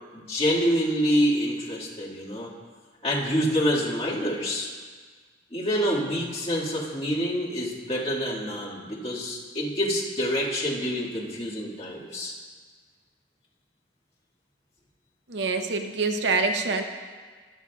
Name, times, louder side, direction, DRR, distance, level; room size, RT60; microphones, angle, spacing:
voice 1, 0.1-2.5 3.0-4.7 5.5-12.3, equal, 30° left, -7 dB, 2.0 m, -27 dB
voice 2, 15.3-16.8, right 3 dB, 85° right, 6 dB, 0.7 m, -25 dB
21.0 x 7.2 x 2.4 m, 1.5 s
head